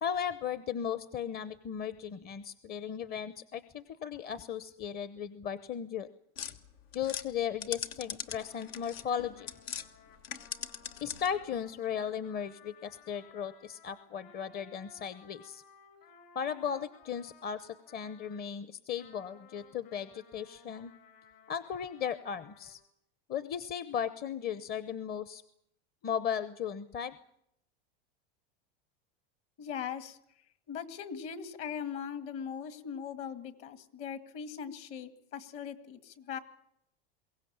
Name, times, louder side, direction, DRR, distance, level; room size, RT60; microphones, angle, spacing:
voice 1, 0.0-6.1 6.9-9.5 11.0-15.6 16.3-20.9 21.5-22.8 23.3-25.4 26.0-27.2, left 8 dB, 30° left, 14 dB, 0.8 m, -36 dB
sound 1, 6.4-9.9 10.2-11.4, left 9 dB, 85° left, 1.5 m, -41 dB
Trumpet, 8.3-18.5 19.0-22.8, left 5 dB, 65° left, 6.2 m, -59 dB
voice 2, 29.6-30.2 30.7-36.4, left 7 dB, 50° left, 11 dB, 2.0 m, -40 dB
22.5 x 17.0 x 8.8 m, 0.76 s
supercardioid pair, 120°, 30 cm